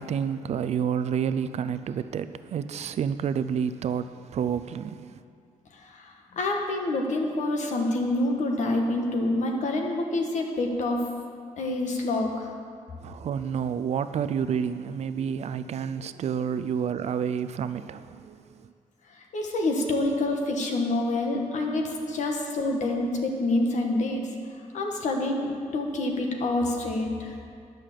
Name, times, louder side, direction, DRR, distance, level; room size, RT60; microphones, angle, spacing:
voice 1, 0.0-5.2 13.0-18.7, right 7 dB, 55° right, 12 dB, 0.4 m, -29 dB
voice 2, 5.7-11.1 11.6-12.5 19.3-24.3 24.7-27.3, left 2 dB, 70° left, 2 dB, 1.5 m, -27 dB
10.5 x 6.7 x 7.4 m, 2.3 s
wide cardioid pair, 165°, 13 cm